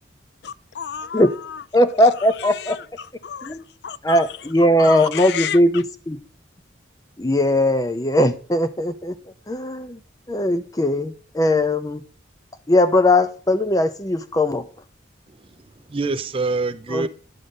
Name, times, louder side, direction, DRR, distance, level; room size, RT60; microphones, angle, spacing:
voice 1, 0.4-1.6 2.5-3.6 3.8-4.3 4.8-5.6, left 8 dB, 60° left, 0.4 m, -32 dB
voice 2, 1.7-2.8 3.4-3.6 4.0-6.2 7.2-9.1 9.5-10.0 10.3-12.0 12.7-14.6 16.9-17.1, left 1 dB, 20° left, 0.6 m, -19 dB
voice 3, 15.3-17.1, right 3 dB, 30° right, 0.5 m, -26 dB
11.0 x 3.8 x 6.6 m
head